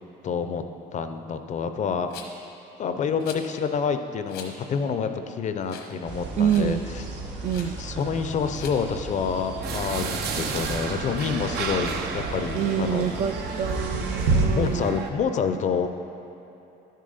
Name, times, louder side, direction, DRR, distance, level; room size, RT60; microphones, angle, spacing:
voice 1, 0.2-0.6 0.9-2.1 2.8-6.8 7.8-13.1 14.5-15.9, left 6 dB, 45° left, 8 dB, 0.5 m, -28 dB
Rattle, 2.1-2.5 3.2-3.5 4.3-4.5 5.0-5.1 5.6-6.0 6.2-6.7 7.4-7.7 8.5-8.8, left 7 dB, 80° left, 1.1 m, -42 dB
sound 1, 6.0-14.5, right 3 dB, 90° right, 1.3 m, -32 dB
voice 2, 6.4-6.8 7.4-7.7 12.5-15.0, right 8 dB, 45° right, 9 dB, 0.4 m, -26 dB
sound 2, 9.6-15.1, right 5 dB, 70° right, 0.7 m, -33 dB
11.5 x 6.4 x 4.0 m, 2.8 s
cardioid pair, 110°, 17 cm